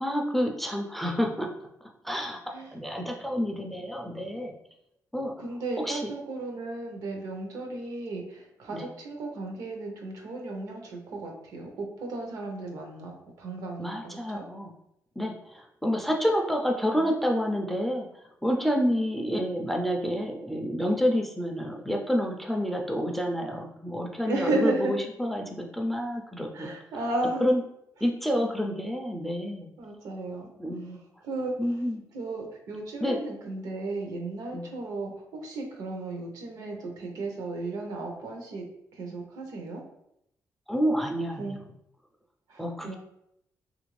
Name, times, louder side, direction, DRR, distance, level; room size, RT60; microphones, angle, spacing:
voice 1, 0.0-1.5 2.0-4.5 5.1-5.3 5.9-6.0 8.7-8.8 13.8-14.7 15.2-18.1 18.4-26.7 27.4-27.6 28.0-29.7 30.6-31.0 31.6-32.0 33.0-33.2 34.5-34.7 40.7-41.6 42.6-42.9, equal, ahead, 1 dB, 0.3 m, -28 dB
voice 2, 5.4-14.4 24.3-25.0 26.5-27.5 29.8-30.5 31.2-31.8 32.1-38.6 38.9-39.8 41.4-41.6 42.5-42.9, right 2 dB, 75° right, 2 dB, 0.7 m, -34 dB
3.3 x 2.5 x 3.1 m, 0.79 s
cardioid pair, 145°, 6 cm